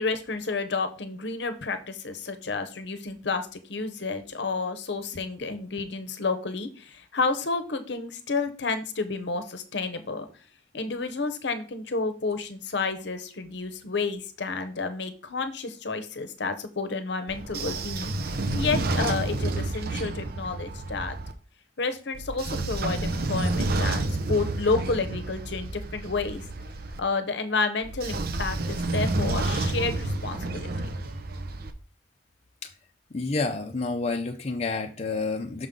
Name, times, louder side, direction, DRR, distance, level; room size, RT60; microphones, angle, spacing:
voice 1, 0.0-10.3 10.7-21.2 21.8-26.5 27.0-30.9, left 4 dB, 60° left, 9 dB, 0.8 m, -30 dB
Train / Sliding door, 17.3-21.3 22.1-27.0 27.8-31.7, right 2 dB, 55° right, 0.7 m, -30 dB
voice 2, 33.1-35.7, left 3 dB, 35° left, 4 dB, 0.5 m, -29 dB
6.3 x 5.3 x 3.7 m, 0.38 s
head